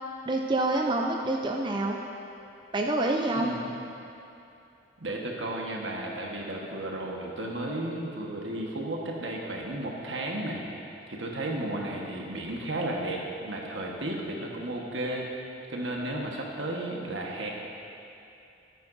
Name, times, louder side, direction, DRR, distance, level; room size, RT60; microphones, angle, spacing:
voice 1, 0.3-2.0 2.7-3.5, right 2 dB, 25° right, 1 dB, 0.4 m, -27 dB
voice 2, 3.3-3.7 5.0-15.3 15.7-17.5, right 1 dB, 80° right, -1 dB, 1.3 m, -33 dB
13.5 x 9.2 x 2.6 m, 2.7 s
head